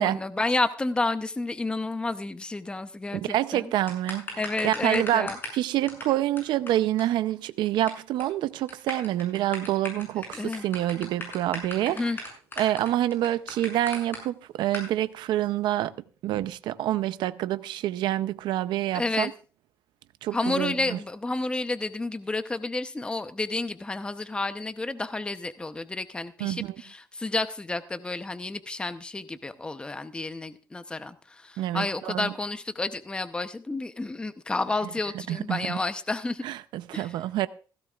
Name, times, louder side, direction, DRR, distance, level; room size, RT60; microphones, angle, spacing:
voice 1, 0.0-3.7 4.4-5.4 10.3-10.7 11.9-12.2 18.9-19.3 20.3-36.4 36.9-37.1, left 2 dB, 15° left, 0.8 m, -30 dB
voice 2, 3.1-12.0 12.6-15.9 16.2-19.3 20.2-21.0 26.4-26.7 31.6-32.3 35.3-35.8 36.4-37.5, right 13 dB, 85° right, 0.6 m, -27 dB
sound 1, 3.9-5.6 5.9-6.0 6.4-6.5 6.7-6.8 7.0-7.1 7.3-7.9 8.2-8.4 8.7-14.2 14.7-14.9, left 2 dB, 30° left, 7.4 m, -36 dB
17.0 x 15.0 x 2.4 m
cardioid pair, 130°, 8 cm